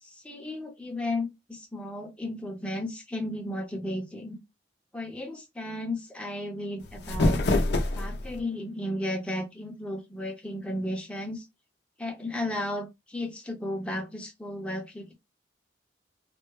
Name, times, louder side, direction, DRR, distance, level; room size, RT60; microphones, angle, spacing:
voice 1, 0.0-4.4 4.9-7.4 7.7-11.4 12.0-15.1, left 1 dB, 5° left, 0.8 m, -34 dB
sound 1, 6.8-8.4, left 2 dB, 60° left, 0.6 m, -26 dB
3.3 x 2.2 x 3.1 m
head